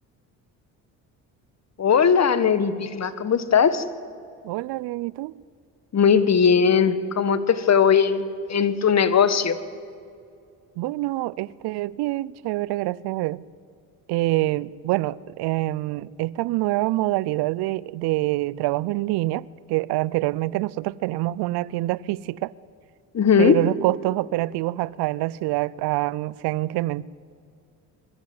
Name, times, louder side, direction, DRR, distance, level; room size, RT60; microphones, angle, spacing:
voice 1, 1.8-3.8 5.9-9.6 23.1-23.6, left 6 dB, 40° left, 1.6 m, -19 dB
voice 2, 4.4-5.3 10.8-13.4 14.1-22.5 23.4-27.0, right 18 dB, 75° right, 0.6 m, -26 dB
23.0 x 14.0 x 9.5 m
supercardioid pair, 75°, 40 cm